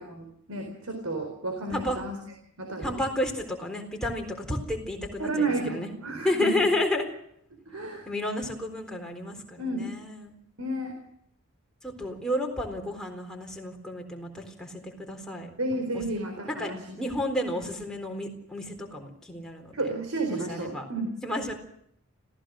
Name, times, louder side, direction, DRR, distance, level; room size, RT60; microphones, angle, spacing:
voice 1, 0.0-2.2 2.6-3.0 5.2-6.7 7.7-8.1 9.6-9.9 10.6-10.9 15.6-16.8 19.7-21.1, right 2 dB, 70° right, 4 dB, 4.2 m, -31 dB
voice 2, 1.7-2.0 2.8-5.9 6.2-7.0 8.1-10.4 11.8-15.5 15.9-16.0 16.5-16.7 17.0-19.9 20.3-20.9 21.2-21.5, left 1 dB, 5° left, 1 dB, 3.9 m, -31 dB
26.0 x 16.5 x 6.4 m, 0.72 s
head